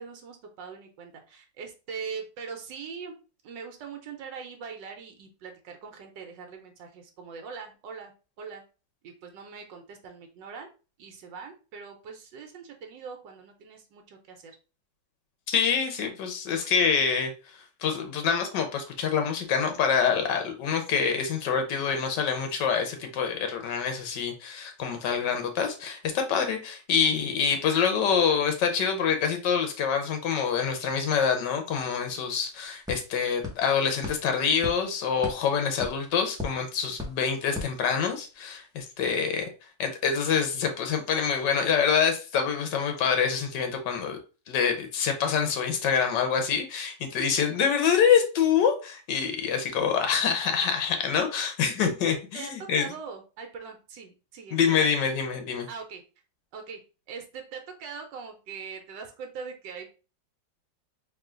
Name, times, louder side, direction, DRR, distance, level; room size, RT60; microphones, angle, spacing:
voice 1, 0.0-3.1 3.4-8.1 8.4-8.6 9.0-10.7 11.0-14.6 52.3-55.0 55.7-56.0 56.5-56.8 57.1-59.9, right 5 dB, 85° right, 4 dB, 1.4 m, -41 dB
voice 2, 15.5-39.5 39.8-44.2 44.5-52.9 54.5-55.7, left 7 dB, 75° left, 5 dB, 1.4 m, -26 dB
sound 1, 32.4-38.5, left 3 dB, 5° right, 0.8 m, -40 dB
3.7 x 2.8 x 3.7 m, 0.33 s
omnidirectional pair, 1.9 m